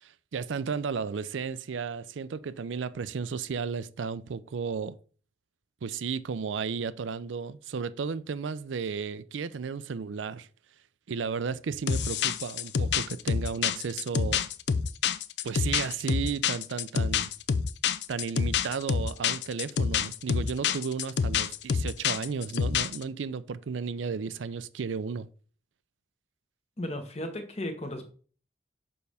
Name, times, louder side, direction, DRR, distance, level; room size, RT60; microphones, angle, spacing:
voice 1, 0.0-5.0 5.8-10.5 11.1-14.4 15.4-17.3 18.1-25.3, right 5 dB, 90° right, 0.4 m, -34 dB
sound 1, 11.9-23.0, left 6 dB, 70° left, 0.4 m, -27 dB
voice 2, 26.8-28.1, left 1 dB, 35° left, 1.1 m, -35 dB
6.9 x 5.4 x 3.4 m
head